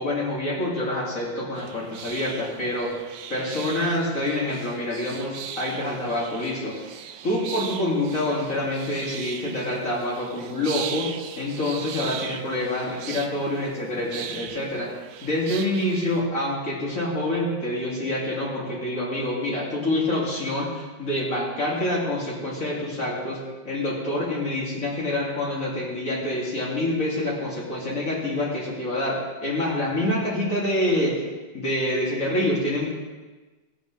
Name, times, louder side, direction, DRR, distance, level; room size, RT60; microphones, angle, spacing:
voice 1, 0.0-2.9 3.3-6.7 7.2-11.1 11.4-14.9 15.2-23.4 23.6-31.1 31.5-32.8, left 1 dB, 40° left, -5 dB, 3.4 m, -26 dB
sound 1, 1.5-16.2, right 9 dB, 90° right, 1.4 m, -39 dB
17.0 x 9.0 x 3.4 m, 1.2 s
omnidirectional pair, 2.1 m